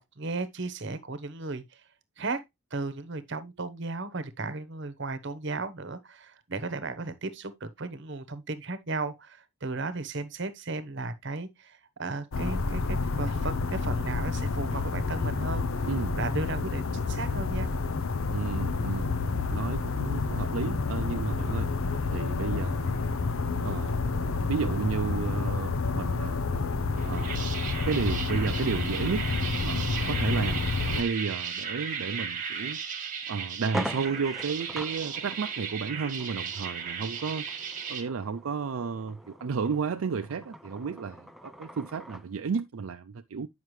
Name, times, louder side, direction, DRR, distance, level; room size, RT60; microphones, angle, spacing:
voice 1, 0.0-1.8 2.2-2.4 2.7-15.7 16.2-17.7 30.3-30.6, right 3 dB, 55° right, 1.0 m, -35 dB
sound 1, 12.3-31.0, left 4 dB, 75° left, 0.7 m, -29 dB
voice 2, 18.3-21.7 22.1-23.0 23.6-26.4 27.0-27.5 27.9-29.3 29.6-30.6 31.0-32.8 33.3-37.5 37.9-43.5, right 5 dB, 75° right, 0.5 m, -32 dB
sound 2, 27.0-38.0, right 7 dB, 40° right, 1.4 m, -36 dB
sound 3, 32.7-32.8 33.2-33.3 33.6-42.3, equal, ahead, 0.5 m, -42 dB
9.2 x 5.8 x 3.1 m
head